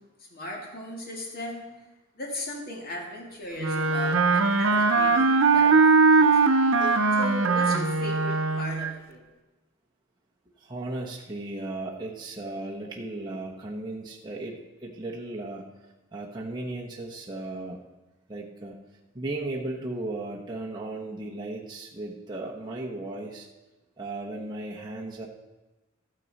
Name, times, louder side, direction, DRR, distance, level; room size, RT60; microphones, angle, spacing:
voice 1, 0.2-1.9 2.1-6.5 7.1-9.2, left 1 dB, 45° left, -1 dB, 2.2 m, -38 dB
Wind instrument woodwind instrument, 3.6-8.9, right 4 dB, 80° right, 0.7 m, -21 dB
voice 2, 6.8-7.2 10.6-15.7 16.1-17.8 18.3-18.8 19.1-23.5 24.0-25.3, right 2 dB, 20° right, -3 dB, 1.0 m, -36 dB
13.5 x 9.1 x 4.1 m, 1.1 s
head